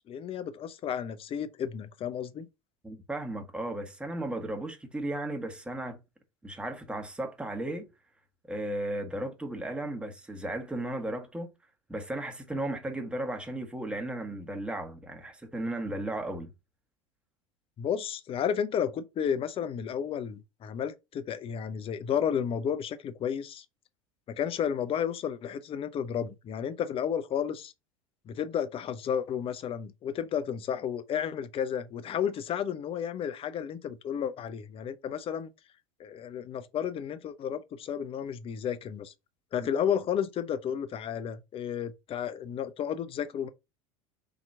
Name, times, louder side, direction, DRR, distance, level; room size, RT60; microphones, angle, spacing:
voice 1, 0.1-2.5 17.8-23.6 24.3-27.7 28.3-35.5 36.0-39.1 39.5-43.5, left 8 dB, 30° left, 0.6 m, -32 dB
voice 2, 2.8-6.0 6.4-7.9 8.5-11.5 11.9-16.5, right 1 dB, 5° right, 1.2 m, -35 dB
3.9 x 2.9 x 4.4 m
figure-of-eight pair, 80°, 17 cm